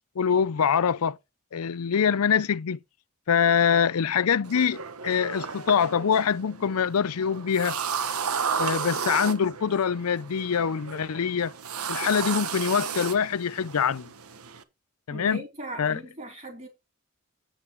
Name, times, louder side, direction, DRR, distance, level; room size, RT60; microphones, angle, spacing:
voice 1, 0.2-1.2 1.5-2.8 3.3-4.8 5.0-7.8 8.6-11.5 11.9-14.1 15.1-15.4 15.8-16.0, left 7 dB, 85° left, 0.5 m, -24 dB
sound 1, 4.4-14.6, right 6 dB, 85° right, 1.1 m, -33 dB
voice 2, 15.1-16.7, right 1 dB, 30° right, 3.8 m, -39 dB
8.7 x 8.1 x 4.5 m
head